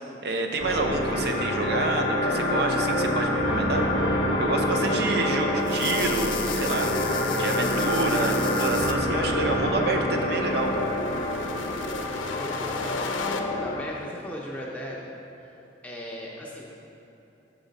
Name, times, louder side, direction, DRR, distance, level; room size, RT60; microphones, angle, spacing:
voice 1, 0.2-3.9 4.4-10.8, right 3 dB, 55° right, 3 dB, 0.6 m, -28 dB
sound 1, 0.6-13.9, left 1 dB, 50° left, 0.7 m, -26 dB
sound 2, 5.6-8.9 10.1-13.4, left 6 dB, 85° left, 0.5 m, -35 dB
voice 2, 12.3-15.0 15.8-16.7, equal, 5° left, -4 dB, 0.5 m, -37 dB
7.2 x 6.2 x 3.9 m, 2.9 s
head